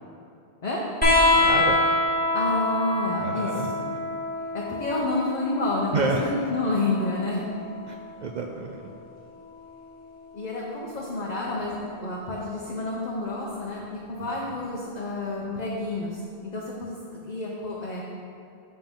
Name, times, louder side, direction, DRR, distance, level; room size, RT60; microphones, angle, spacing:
sound 1, 1.0-8.1 9.5-10.3 11.6-11.7, left 2 dB, 10° left, 1.7 m, -26 dB
voice 1, 1.3-1.8 3.2-3.7 5.9-6.5 7.9-8.9 14.2-14.4, right 3 dB, 55° right, 1 dB, 0.6 m, -30 dB
voice 2, 2.3-3.5 3.8-3.9 4.5-7.4 10.3-18.1, left 2 dB, 45° left, -4 dB, 0.9 m, -29 dB
7.3 x 7.1 x 3.7 m, 2.6 s
omnidirectional pair, 1.0 m